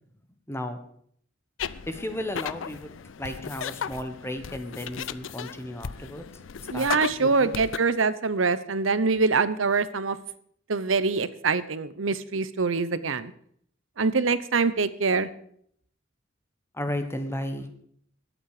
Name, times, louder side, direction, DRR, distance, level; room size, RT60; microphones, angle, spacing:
voice 1, 0.5-0.8 1.9-6.2 6.6-7.5 16.7-17.7, left 1 dB, 15° left, 7 dB, 1.2 m, -34 dB
sound 1, 1.6-7.8, left 7 dB, 80° left, 0.5 m, -36 dB
voice 2, 6.7-10.2 10.7-13.3 14.0-15.3, right 4 dB, 90° right, 14 dB, 0.9 m, -24 dB
21.0 x 8.7 x 5.0 m, 0.65 s
head